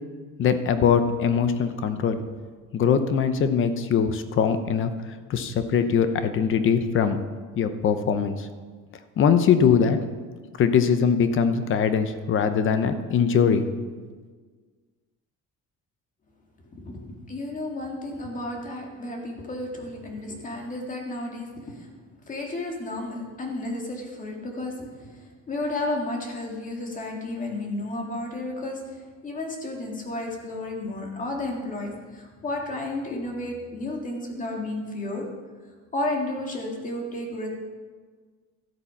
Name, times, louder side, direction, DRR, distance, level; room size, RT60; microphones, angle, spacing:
voice 1, 0.4-2.2 2.7-4.9 5.3-7.2 7.6-8.5 9.2-10.0 10.6-13.9, left 7 dB, 40° left, 10 dB, 0.8 m, -22 dB
voice 2, 16.7-21.9 22.2-35.3 35.9-37.5, left 2 dB, 25° left, 1 dB, 2.0 m, -32 dB
13.0 x 8.4 x 5.8 m, 1.5 s
cardioid pair, 165°, 31 cm